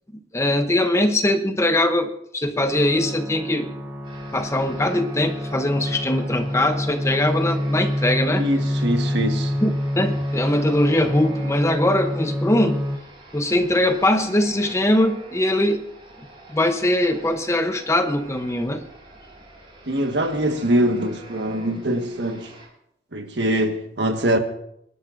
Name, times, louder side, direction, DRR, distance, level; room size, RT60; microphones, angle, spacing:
voice 1, 0.3-3.7 4.3-8.4 9.6-12.8 13.3-15.8 16.5-18.8, left 1 dB, 15° left, 0.8 m, -21 dB
sound 1, 2.6-13.0, left 1 dB, 10° right, 0.9 m, -27 dB
sound 2, 4.0-22.7, right 2 dB, 30° right, 4.9 m, -45 dB
voice 2, 8.4-9.5 19.9-22.5 23.1-24.4, right 1 dB, 70° right, 1.5 m, -23 dB
27.0 x 12.0 x 2.6 m
head